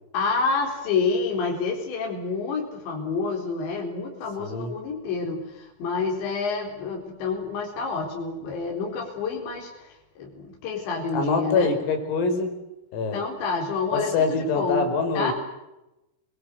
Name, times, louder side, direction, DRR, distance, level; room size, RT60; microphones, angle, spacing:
voice 1, 0.1-11.7 13.1-15.3, left 4 dB, 60° left, 0 dB, 6.2 m, -28 dB
voice 2, 4.4-4.7 11.1-12.6 12.9-13.2 13.9-15.3, left 4 dB, 90° left, 6 dB, 7.5 m, -25 dB
29.5 x 23.0 x 8.1 m, 0.94 s
omnidirectional pair, 5.8 m